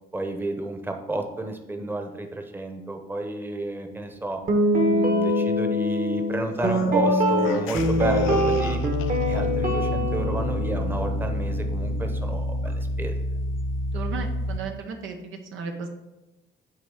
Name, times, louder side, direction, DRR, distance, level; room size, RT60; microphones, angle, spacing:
voice 1, 0.1-4.4 4.8-8.8 9.3-13.2, right 2 dB, 10° right, 4 dB, 0.9 m, -31 dB
Guitar, 4.5-12.7, equal, 40° right, 1.2 m, -24 dB
sound 1, 6.5-9.5, left 8 dB, 85° left, 0.5 m, -39 dB
sound 2, 7.8-14.6, left 1 dB, 45° left, 0.9 m, -28 dB
voice 2, 13.9-15.9, right 5 dB, 85° right, 3 dB, 0.9 m, -35 dB
8.8 x 3.1 x 4.8 m, 0.99 s
cardioid pair, 90°, 20 cm